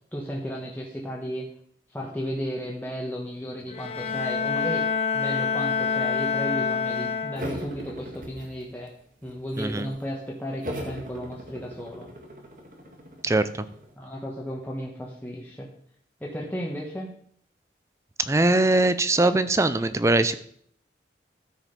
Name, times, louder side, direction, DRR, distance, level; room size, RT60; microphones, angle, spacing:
voice 1, 0.1-1.5 1.9-4.8 5.1-8.9 9.2-12.1 14.0-15.7 16.2-17.1, equal, 10° left, -2 dB, 1.2 m, -34 dB
Bowed string instrument, 3.7-7.8, left 5 dB, 35° left, 0.8 m, -27 dB
sound 1, 7.4-8.9 9.2-10.0 10.6-13.9, equal, 50° right, 1.9 m, -39 dB
voice 2, 18.3-20.3, right 2 dB, 15° right, 13 dB, 0.4 m, -21 dB
13.0 x 5.0 x 5.2 m, 0.62 s
head